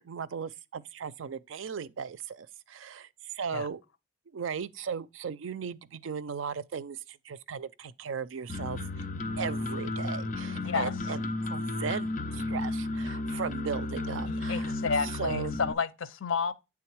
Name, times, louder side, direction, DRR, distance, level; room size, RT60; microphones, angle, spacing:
voice 1, 0.0-3.1 3.3-3.8 4.3-9.0 9.4-14.7 15.0-15.6, right 6 dB, 85° right, 0.4 m, -37 dB
sound 1, 8.5-15.7, left 2 dB, 40° left, 0.6 m, -33 dB
voice 2, 10.6-10.9 14.3-16.5, left 5 dB, 90° left, 0.6 m, -31 dB
8.6 x 3.6 x 4.6 m
head